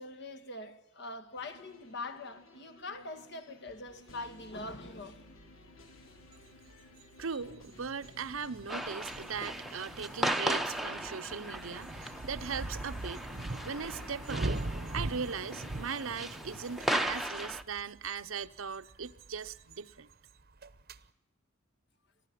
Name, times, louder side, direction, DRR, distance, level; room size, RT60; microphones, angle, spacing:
voice 1, 0.0-5.2 6.7-6.9, left 2 dB, 55° left, 1.9 m, -43 dB
sound 1, 1.4-17.1, left 1 dB, 80° left, 3.5 m, -54 dB
sound 2, 4.4-4.5 4.9-5.4 7.3-7.4 7.8-7.9 8.1-8.2 8.3-9.7 10.1-20.1 20.4-21.0, right 2 dB, 50° right, 0.9 m, -41 dB
voice 2, 7.2-13.3 13.7-14.6 14.9-20.1, right 6 dB, 85° right, 0.9 m, -39 dB
sound 3, 8.7-17.6, right 1 dB, ahead, 0.8 m, -37 dB
24.5 x 15.0 x 10.0 m
head